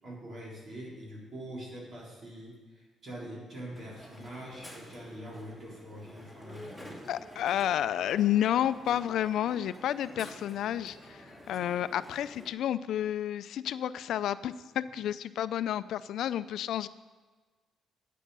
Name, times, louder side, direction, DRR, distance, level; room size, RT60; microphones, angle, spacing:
voice 1, 0.0-7.1, right 1 dB, 50° right, -4 dB, 3.9 m, -44 dB
Crowd, 3.7-12.5, equal, 5° right, 3.0 m, -49 dB
voice 2, 7.1-11.2 11.5-16.9, left 11 dB, 75° left, 15 dB, 0.4 m, -30 dB
10.0 x 8.6 x 6.6 m, 1.4 s
cardioid pair, 90°, 0 cm